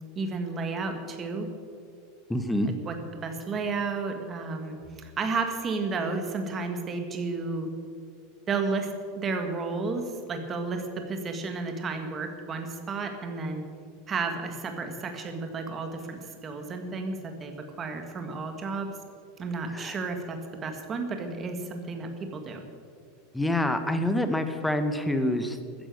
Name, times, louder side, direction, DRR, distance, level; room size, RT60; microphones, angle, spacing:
voice 1, 0.1-1.5 2.6-7.7 8.5-13.6 14.1-18.9 19.4-22.6, right 4 dB, 20° right, 5 dB, 1.6 m, -32 dB
voice 2, 2.3-2.7 19.7-20.0 23.3-25.6, left 1 dB, 5° left, 8 dB, 0.9 m, -26 dB
14.0 x 10.0 x 7.8 m, 2.2 s
supercardioid pair, 165°, 0 cm